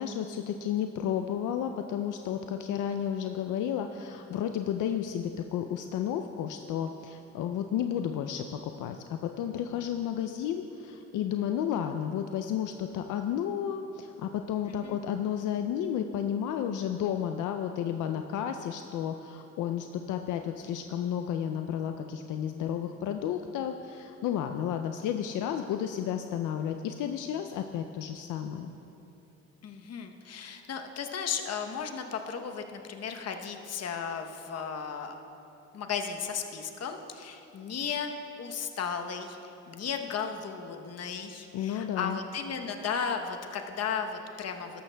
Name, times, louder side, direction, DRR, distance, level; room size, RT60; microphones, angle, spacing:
voice 1, 0.0-28.7 41.5-42.2, left 9 dB, 80° left, 6 dB, 0.5 m, -32 dB
voice 2, 14.7-15.0 29.6-35.2 35.7-38.1 38.4-44.8, left 6 dB, 55° left, 5 dB, 0.9 m, -35 dB
13.5 x 12.5 x 2.2 m, 2.8 s
cardioid pair, 90°, 30 cm